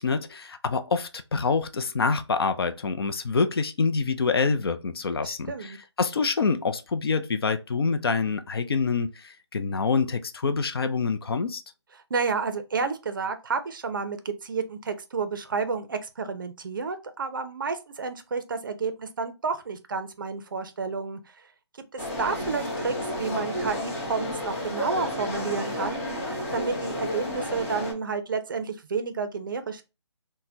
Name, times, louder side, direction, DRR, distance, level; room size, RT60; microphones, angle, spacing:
voice 1, 0.0-11.6, left 4 dB, 55° left, 0.4 m, -26 dB
voice 2, 5.2-5.8 12.1-21.2 21.9-25.9 26.3-29.8, right 5 dB, 45° right, 0.5 m, -30 dB
sound 1, 22.0-27.9, left 1 dB, 30° left, 1.0 m, -31 dB
3.9 x 2.1 x 2.7 m
figure-of-eight pair, 155°, 15 cm